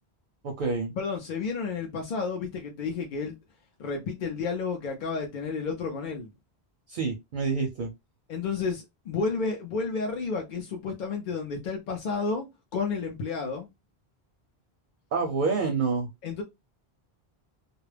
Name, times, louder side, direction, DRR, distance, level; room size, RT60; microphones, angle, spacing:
voice 1, 0.4-0.9 6.9-7.9 15.1-16.1, right 4 dB, 60° right, 0.6 m, -27 dB
voice 2, 1.0-3.4 3.8-6.3 8.3-13.7 16.2-16.4, left 4 dB, 60° left, 0.6 m, -31 dB
2.3 x 2.0 x 3.1 m
omnidirectional pair, 1.1 m